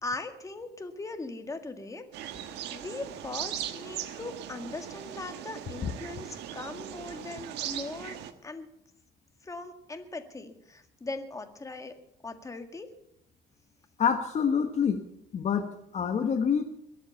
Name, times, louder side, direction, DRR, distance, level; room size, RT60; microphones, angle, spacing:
voice 1, 0.0-2.0 2.7-8.2 8.4-8.7 9.4-11.9 12.2-12.9, left 3 dB, 20° left, 6 dB, 1.9 m, -39 dB
sound 1, 2.1-8.3, right 11 dB, 85° right, 1.4 m, -39 dB
voice 2, 14.0-15.0 15.3-16.6, left 7 dB, 45° left, 6 dB, 1.2 m, -27 dB
22.0 x 8.2 x 7.1 m, 0.77 s
cardioid pair, 110°, 17 cm